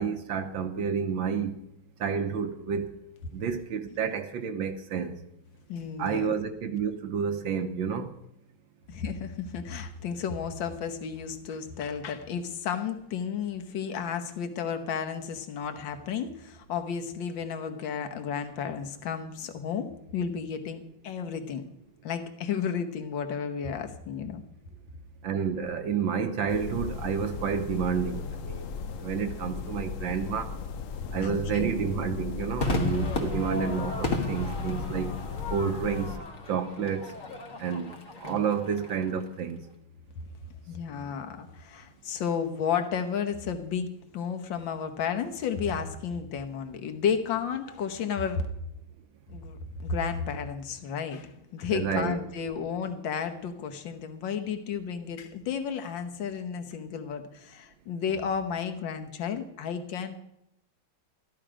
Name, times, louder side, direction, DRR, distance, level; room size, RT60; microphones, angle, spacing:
voice 1, 0.0-1.5 2.0-3.0 3.3-5.2 6.0-8.1 25.2-28.7 29.0-30.6 31.1-35.1 35.5-36.2 36.5-37.1 37.6-39.7 51.7-52.2, right 6 dB, 70° right, 1.5 m, -30 dB
voice 2, 5.7-6.3 8.9-21.6 22.0-24.4 31.0-31.7 40.7-43.9 44.1-48.5 49.3-60.2, left 7 dB, 65° left, 1.7 m, -32 dB
sound 1, 26.5-36.2, left 6 dB, 85° left, 0.7 m, -37 dB
Crowd / Fireworks, 32.6-39.1, left 2 dB, 45° left, 1.4 m, -33 dB
13.5 x 11.5 x 5.0 m
omnidirectional pair, 2.4 m